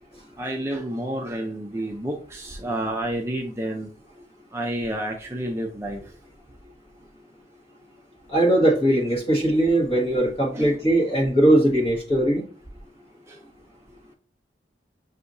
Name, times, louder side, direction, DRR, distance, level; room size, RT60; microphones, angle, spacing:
voice 1, 0.4-3.9 4.5-6.0 10.5-10.8 13.3-13.4, right 1 dB, 15° right, 0.5 m, -30 dB
voice 2, 8.3-12.4, right 1 dB, 35° left, 1.4 m, -20 dB
7.3 x 2.8 x 2.6 m
head